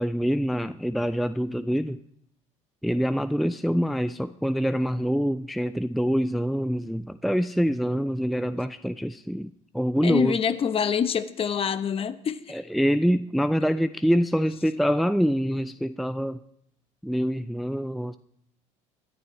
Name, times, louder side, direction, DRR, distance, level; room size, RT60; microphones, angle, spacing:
voice 1, 0.0-2.0 2.8-10.4 12.5-16.4 17.0-18.2, equal, ahead, 0.4 m, -25 dB
voice 2, 10.0-12.6, left 7 dB, 35° left, 0.9 m, -26 dB
22.0 x 11.0 x 3.2 m
supercardioid pair, 85°, 16 cm